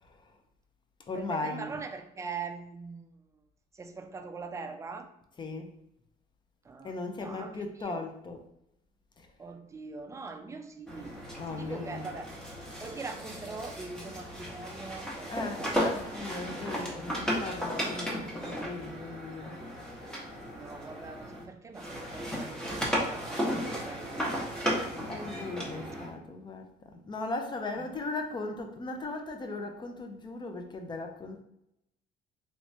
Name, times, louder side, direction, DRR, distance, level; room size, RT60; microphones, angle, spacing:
voice 1, 0.0-0.3 1.1-1.8 5.4-5.8 6.8-8.5 9.2-9.3 11.4-12.3 15.3-19.6 25.1-31.4, left 3 dB, 25° left, 5 dB, 0.6 m, -38 dB
voice 2, 1.1-3.1 3.7-5.1 6.7-8.0 9.4-11.2 11.5-12.3 12.8-15.7 20.5-24.2 25.1-25.5, right 4 dB, 20° right, 6 dB, 0.4 m, -42 dB
sound 1, 10.9-21.4 21.7-26.1, equal, 5° left, 1.0 m, -35 dB
3.2 x 3.1 x 2.7 m, 0.81 s
cardioid pair, 110°, 17 cm